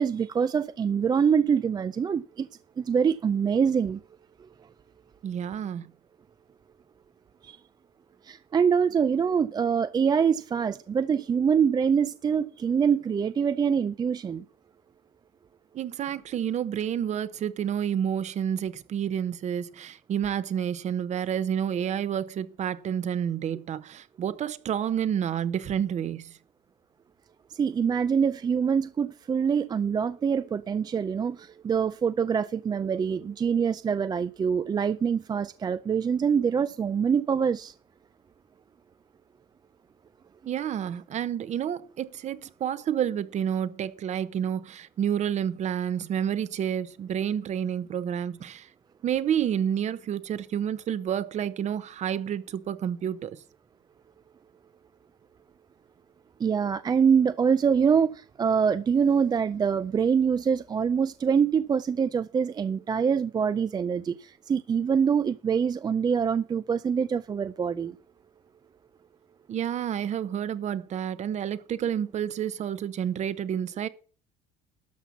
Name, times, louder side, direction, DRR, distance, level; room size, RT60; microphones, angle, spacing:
voice 1, 0.0-2.5 2.8-4.0 7.4-7.6 8.2-14.4 27.5-37.7 56.4-68.0, right 6 dB, 25° right, 0.4 m, -25 dB
voice 2, 5.2-5.9 15.7-26.4 40.5-48.7 49.0-53.4 69.5-73.9, right 9 dB, 45° right, 1.0 m, -29 dB
12.5 x 5.6 x 7.1 m
cardioid pair, 110°, 16 cm